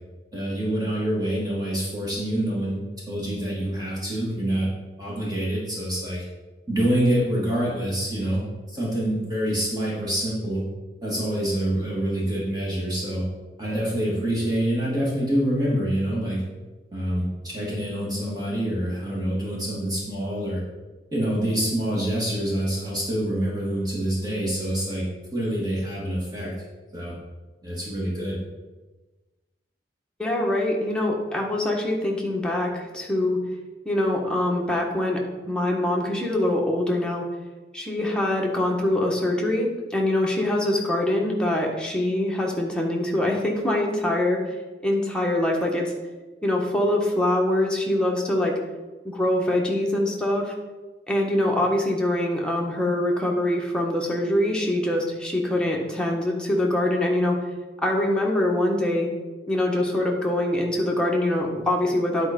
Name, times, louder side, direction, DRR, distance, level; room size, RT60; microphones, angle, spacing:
voice 1, 0.3-4.7 5.0-6.2 6.7-8.4 8.7-10.6 11.0-13.2 13.6-16.4 16.9-20.6 21.1-25.0 25.3-26.5 26.9-27.2 27.6-28.4, right 1 dB, 25° right, -6 dB, 2.3 m, -26 dB
voice 2, 30.2-33.4 33.8-35.2 35.5-37.2 37.7-44.6 44.8-45.9 46.4-48.6 49.0-50.5 51.1-57.4 57.8-59.1 59.5-62.3, left 1 dB, 5° left, -1 dB, 1.3 m, -24 dB
9.9 x 4.3 x 5.3 m, 1.2 s
head